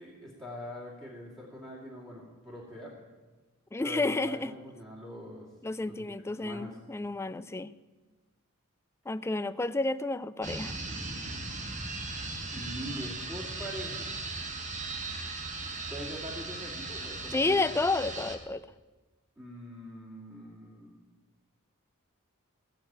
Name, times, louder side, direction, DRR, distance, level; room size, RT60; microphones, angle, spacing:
voice 1, 0.0-2.9 3.8-5.5 5.8-6.8 12.5-14.1 15.9-17.7 19.4-21.0, equal, 15° right, -5 dB, 2.6 m, -43 dB
voice 2, 3.7-4.5 5.6-7.7 9.1-10.7 17.3-18.7, left 3 dB, 10° left, 14 dB, 0.4 m, -30 dB
sound 1, 10.4-18.4, right 3 dB, 35° right, 1.3 m, -38 dB
17.0 x 6.6 x 8.8 m, 1.3 s
head